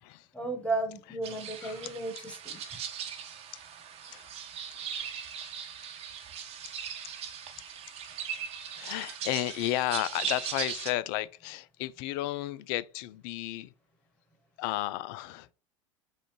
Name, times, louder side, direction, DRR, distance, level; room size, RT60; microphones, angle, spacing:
voice 1, 0.3-2.6, right 2 dB, 5° left, 1.6 m, -34 dB
sound 1, 1.2-10.9, right 8 dB, 40° right, 1.0 m, -39 dB
voice 2, 1.6-1.9 3.5-3.6 4.1-4.3 4.7-5.1 6.7-6.8 8.8-13.7 14.6-15.5, left 15 dB, 50° left, 0.4 m, -33 dB
5.6 x 2.5 x 3.2 m
figure-of-eight pair, 80°, 16 cm